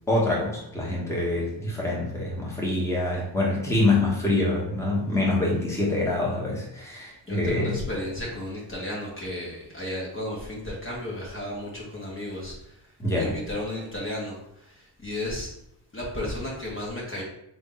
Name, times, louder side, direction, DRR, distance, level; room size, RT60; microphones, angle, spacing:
voice 1, 0.1-7.8 13.0-13.3, left 2 dB, 5° left, -4 dB, 1.2 m, -25 dB
voice 2, 7.3-15.5 15.9-17.2, left 1 dB, 25° left, -4 dB, 1.2 m, -34 dB
3.3 x 2.6 x 3.9 m, 0.78 s
cardioid pair, 60°, 47 cm